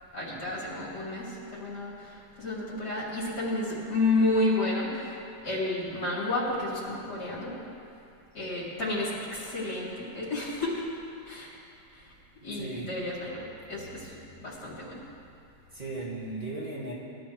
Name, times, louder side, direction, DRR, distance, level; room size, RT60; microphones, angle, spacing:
voice 1, 0.1-5.1 5.4-7.5 8.3-10.8 11.3-11.5 12.4-15.0, left 2 dB, 70° left, -8 dB, 4.5 m, -31 dB
voice 2, 12.5-12.9 15.7-16.9, right 2 dB, 30° right, -6 dB, 2.3 m, -36 dB
22.0 x 13.0 x 3.3 m, 2.5 s
omnidirectional pair, 1.9 m